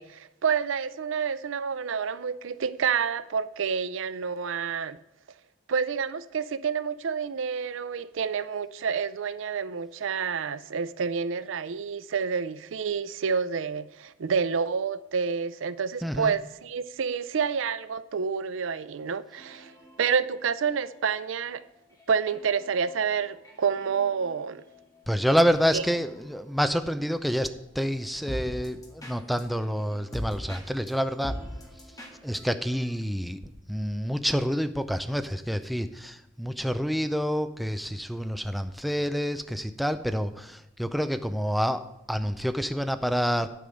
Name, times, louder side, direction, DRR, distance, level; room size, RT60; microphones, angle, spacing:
voice 1, 0.0-5.0 5.7-19.7 20.0-21.6 22.1-24.6 25.7-25.8, right 6 dB, 90° right, 0.5 m, -29 dB
voice 2, 16.0-16.3 25.1-31.4 32.2-33.4 33.7-43.5, equal, ahead, 0.4 m, -28 dB
sound 1, 19.3-33.0, equal, 20° left, 1.7 m, -44 dB
10.0 x 5.4 x 7.7 m
head